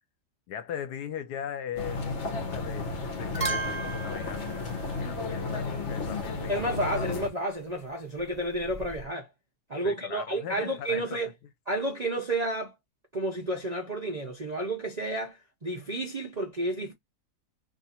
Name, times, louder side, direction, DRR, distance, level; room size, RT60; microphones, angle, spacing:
voice 1, 0.5-7.1 9.8-11.2, left 9 dB, 75° left, 1.2 m, -39 dB
sound 1, 1.8-7.3, left 3 dB, 55° left, 1.0 m, -33 dB
sound 2, 2.6-2.9 3.2-5.7 8.2-9.1, right 3 dB, 25° right, 1.0 m, -37 dB
voice 2, 6.5-9.3 9.7-11.3 11.7-12.7 13.1-16.9, right 1 dB, 45° right, 0.5 m, -31 dB
2.8 x 2.5 x 4.1 m
omnidirectional pair, 1.8 m